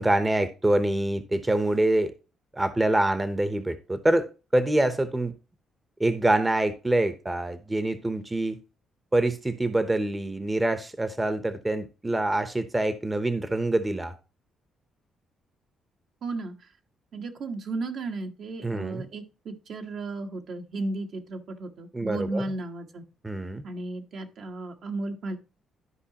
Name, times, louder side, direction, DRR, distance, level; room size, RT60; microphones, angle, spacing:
voice 1, 0.0-2.1 2.5-5.3 6.0-8.6 9.1-14.1 18.6-19.0 21.9-22.5 23.2-23.6, right 1 dB, 15° right, 11 dB, 0.8 m, -25 dB
voice 2, 16.2-16.5 17.1-23.0 23.6-25.4, right 2 dB, 65° right, 4 dB, 1.3 m, -34 dB
12.5 x 4.9 x 2.9 m, 0.32 s
cardioid pair, 90°, 0 cm